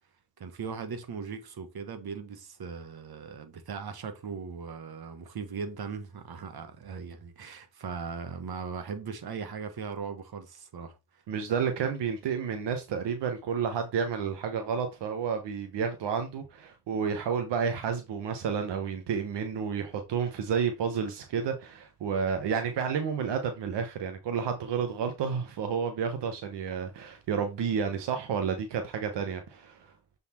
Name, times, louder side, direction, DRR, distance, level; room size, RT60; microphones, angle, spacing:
voice 1, 0.4-11.2, right 5 dB, 65° right, 1.5 m, -39 dB
voice 2, 11.3-29.9, right 6 dB, 90° right, 1.0 m, -31 dB
6.9 x 4.2 x 4.2 m
cardioid pair, 55°, 41 cm